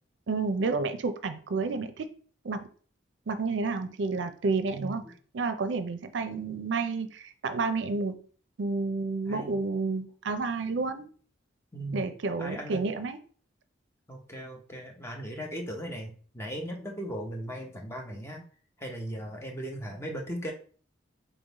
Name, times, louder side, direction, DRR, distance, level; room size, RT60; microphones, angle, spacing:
voice 1, 0.3-2.1 2.4-2.7 3.3-5.0 5.3-8.2 8.6-11.1 11.9-13.2, right 4 dB, 65° right, 10 dB, 0.5 m, -30 dB
voice 2, 4.7-5.1 9.3-9.6 11.7-12.1 12.4-12.8 14.1-18.4 18.8-20.5, right 1 dB, 15° left, 1 dB, 0.7 m, -38 dB
3.8 x 3.4 x 4.0 m, 0.43 s
head